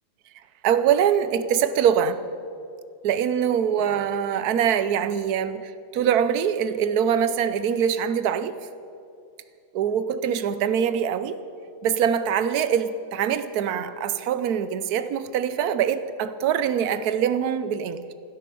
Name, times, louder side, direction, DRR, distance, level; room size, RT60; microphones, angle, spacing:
voice 1, 0.6-2.2 3.0-8.6 9.7-11.4 11.8-18.1, right 8 dB, 60° right, 12 dB, 1.1 m, -23 dB
16.0 x 13.0 x 7.0 m, 2.5 s
omnidirectional pair, 2.1 m